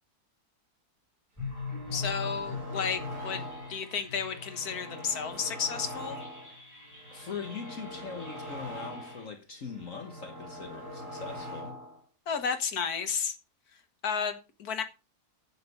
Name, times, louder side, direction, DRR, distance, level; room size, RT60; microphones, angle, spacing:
sound 1, 1.4-9.2, left 4 dB, 10° left, 5.2 m, -42 dB
sound 2, 1.5-3.9 4.2-6.6 6.9-9.3 9.6-12.0, equal, 50° right, 4.3 m, -43 dB
voice 1, 1.9-3.4 3.7-6.2 12.3-13.3 14.0-14.8, left 6 dB, 70° left, 1.9 m, -32 dB
voice 2, 7.1-11.8, left 5 dB, 55° left, 1.5 m, -41 dB
9.0 x 8.7 x 5.2 m
omnidirectional pair, 1.7 m